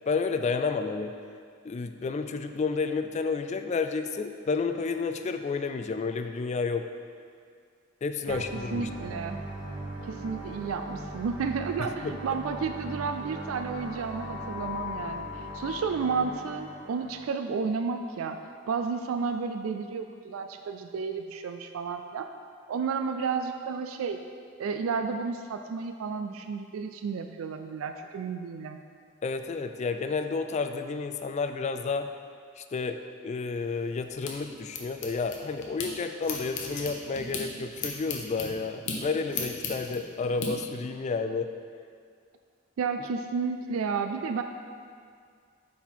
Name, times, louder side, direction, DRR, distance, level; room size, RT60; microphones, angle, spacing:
voice 1, 0.1-1.1 1.6-6.9 8.0-9.1 12.0-12.1 29.2-32.1 32.6-33.0 33.2-41.5, left 4 dB, 35° left, 7 dB, 0.3 m, -31 dB
sound 1, 8.3-17.2, left 1 dB, 25° right, 1.4 m, -39 dB
voice 2, 8.3-9.4 10.0-18.4 18.7-22.3 22.7-24.2 24.6-28.8 42.8-44.4, right 5 dB, 80° right, 7 dB, 0.4 m, -32 dB
sound 2, 33.6-35.9 36.2-40.5, left 4 dB, 60° left, 0.9 m, -37 dB
8.1 x 4.2 x 4.4 m, 2.1 s
head